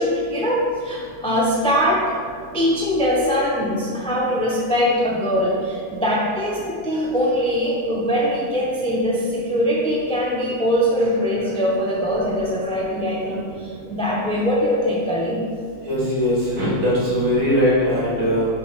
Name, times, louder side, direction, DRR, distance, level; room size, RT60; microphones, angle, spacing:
voice 1, 0.0-2.0 2.5-15.4, equal, 10° left, -4 dB, 0.3 m, -22 dB
voice 2, 15.9-18.5, equal, 60° right, -8 dB, 2.1 m, -20 dB
6.2 x 3.6 x 4.6 m, 2.2 s
omnidirectional pair, 1.6 m